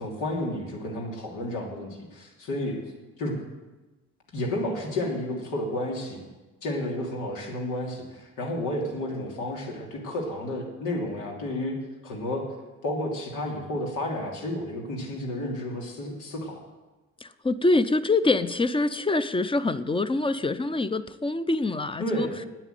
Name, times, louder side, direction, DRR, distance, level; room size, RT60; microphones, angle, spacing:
voice 1, 0.0-2.8 3.2-3.4 4.3-6.2 6.6-11.7 12.0-12.4 12.8-16.6 22.0-22.4, left 1 dB, 90° left, 0 dB, 3.1 m, -31 dB
voice 2, 17.2-22.3, left 2 dB, 15° left, 13 dB, 0.6 m, -25 dB
9.2 x 9.1 x 9.3 m, 1.2 s
cardioid pair, 90°, 30 cm